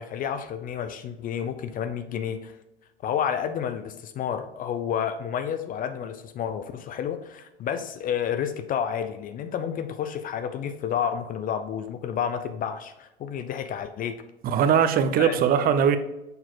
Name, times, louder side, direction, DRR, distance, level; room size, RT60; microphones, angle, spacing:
voice 1, 0.0-2.5 3.0-14.2 15.2-15.4, left 8 dB, 30° left, 10 dB, 0.6 m, -30 dB
voice 2, 14.4-16.0, right 8 dB, 30° right, 10 dB, 0.7 m, -20 dB
6.8 x 4.2 x 4.0 m, 0.93 s
hypercardioid pair, 95°, 29 cm